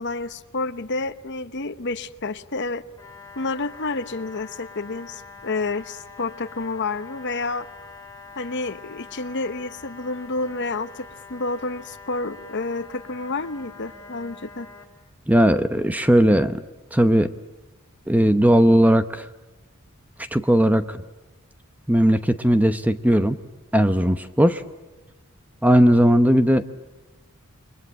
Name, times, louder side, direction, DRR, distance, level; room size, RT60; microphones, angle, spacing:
voice 1, 0.0-2.8 3.4-7.7 8.4-14.7, left 3 dB, 50° left, 10 dB, 1.0 m, -29 dB
sound 1, 3.0-14.8, left 4 dB, 15° left, 5.9 m, -44 dB
voice 2, 15.3-16.6 16.9-17.3 18.1-19.3 20.3-21.0 21.9-23.4 23.7-24.6 25.6-26.6, equal, 5° right, 10 dB, 0.8 m, -17 dB
29.0 x 23.0 x 8.6 m, 1.1 s
head